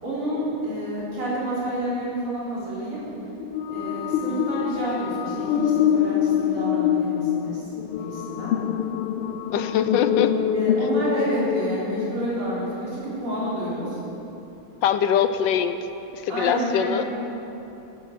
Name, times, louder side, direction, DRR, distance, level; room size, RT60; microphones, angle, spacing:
voice 1, 0.0-3.0 3.7-7.6 8.0-8.6 10.5-14.0 16.3-17.1, right 1 dB, 85° right, -8 dB, 4.9 m, -29 dB
sound 1, 3.4-12.8, left 9 dB, 90° left, 1.6 m, -25 dB
voice 2, 9.5-10.3 14.8-15.8 16.1-17.0, left 9 dB, 70° left, 10 dB, 1.2 m, -22 dB
12.5 x 9.3 x 7.7 m, 2.9 s
omnidirectional pair, 2.3 m